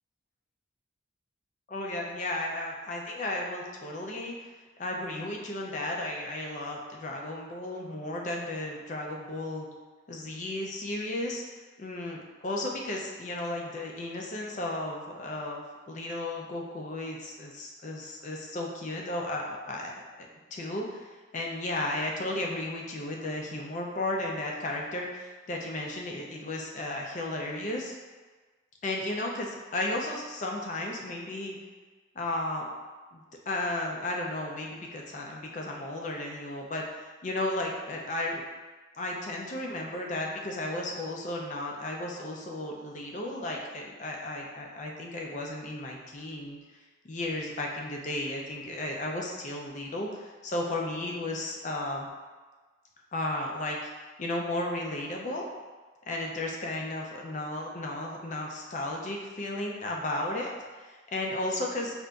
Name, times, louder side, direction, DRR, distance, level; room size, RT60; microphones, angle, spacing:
voice 1, 1.7-4.5 4.8-9.7 10.1-11.4 11.8-19.9 20.5-27.9 28.8-31.6 32.2-32.7 33.1-38.4 39.0-46.6 47.0-52.1 53.1-53.9 54.2-55.5 56.1-62.0, left 1 dB, 40° left, 0 dB, 0.4 m, -34 dB
5.0 x 2.5 x 2.2 m, 1.3 s
head